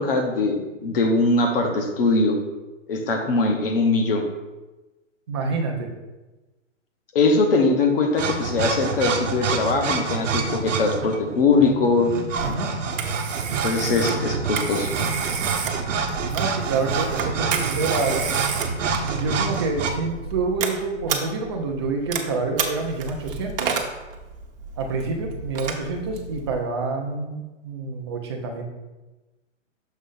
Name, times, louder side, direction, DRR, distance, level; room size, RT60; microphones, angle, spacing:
voice 1, 0.0-2.4 2.9-4.2 7.1-12.2 13.6-14.9, left 3 dB, 45° left, 3 dB, 1.1 m, -21 dB
voice 2, 5.3-5.9 12.4-12.7 16.3-18.3 19.0-23.7 24.8-28.6, right 3 dB, 20° right, 2 dB, 0.5 m, -27 dB
sound 1, 8.1-19.9, right 5 dB, 75° right, 1.0 m, -27 dB
Telephone, 12.4-26.6, right 5 dB, 45° right, 0.8 m, -32 dB
6.4 x 3.1 x 5.4 m, 1.1 s
hypercardioid pair, 165°, 38 cm